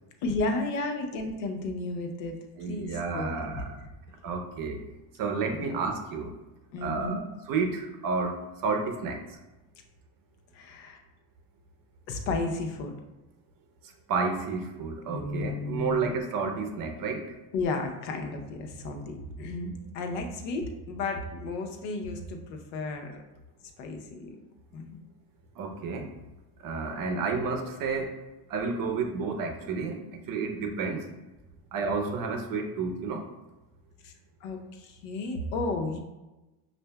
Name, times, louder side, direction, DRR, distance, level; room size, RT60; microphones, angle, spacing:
voice 1, 0.2-2.4 2.6-3.5 5.6-5.8 6.7-7.2 10.5-11.0 12.1-12.9 15.1-16.1 17.5-23.1 23.8-24.4 24.7-25.0 34.0-34.1 34.4-36.0, left 2 dB, 90° left, 4 dB, 0.8 m, -33 dB
voice 2, 2.6-3.8 4.2-4.8 5.2-6.3 6.8-9.4 13.8-17.4 25.6-26.1 26.6-28.2 28.5-31.1 31.7-33.3, right 4 dB, 45° right, 4 dB, 0.7 m, -31 dB
6.2 x 2.6 x 2.2 m, 1.1 s
supercardioid pair, 105°, 49 cm